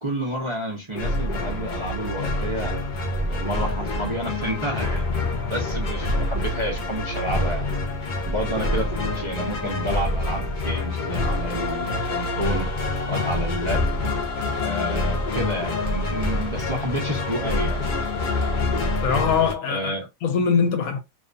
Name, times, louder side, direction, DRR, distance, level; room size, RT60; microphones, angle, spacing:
voice 1, 0.0-2.8 3.2-5.1 5.5-7.6 8.3-12.7 13.1-13.9 14.6-17.8 19.7-20.1, right 1 dB, 40° right, 0.4 m, -30 dB
sound 1, 0.9-19.5, left 2 dB, 55° left, 0.5 m, -26 dB
voice 2, 19.0-20.0 20.2-21.0, left 6 dB, 75° left, 1.0 m, -22 dB
2.5 x 2.2 x 2.4 m
omnidirectional pair, 1.5 m